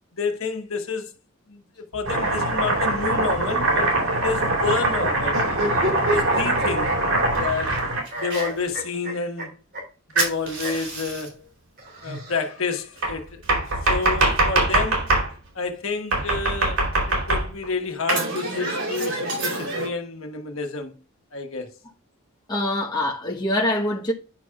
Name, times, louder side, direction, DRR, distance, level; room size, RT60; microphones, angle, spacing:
voice 1, 0.1-1.1 1.5-1.6 1.9-5.4 6.0-6.9 7.4-7.8 8.2-9.5 10.1-11.5 12.0-15.1 15.5-20.9 21.3-21.7, left 4 dB, 70° left, 1.3 m, -29 dB
Domestic sounds home sounds, 2.0-8.4 10.2-11.3 13.0-15.3 16.1-17.7 18.1-19.9, right 2 dB, 85° right, 4.2 m, -23 dB
sound 1, 5.3-7.8 8.1-9.5 9.7-9.8 10.1-10.2 10.6-10.7 11.8-12.8, equal, 50° right, 2.6 m, -29 dB
voice 2, 22.5-24.1, left 1 dB, 20° left, 1.1 m, -24 dB
10.0 x 6.0 x 2.4 m
head